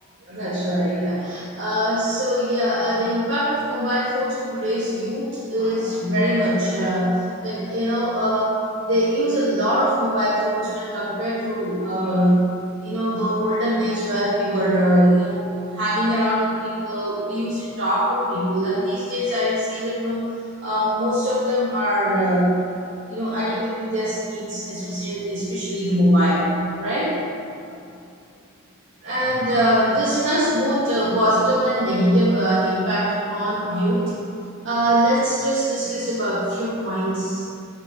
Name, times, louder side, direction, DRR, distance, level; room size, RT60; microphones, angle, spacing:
voice 1, 0.2-8.6 8.9-12.5 12.8-20.2 20.6-22.5 23.1-27.2 29.0-34.1 34.6-37.5, equal, 55° right, -10 dB, 1.5 m, -22 dB
7.4 x 5.9 x 5.1 m, 2.5 s
head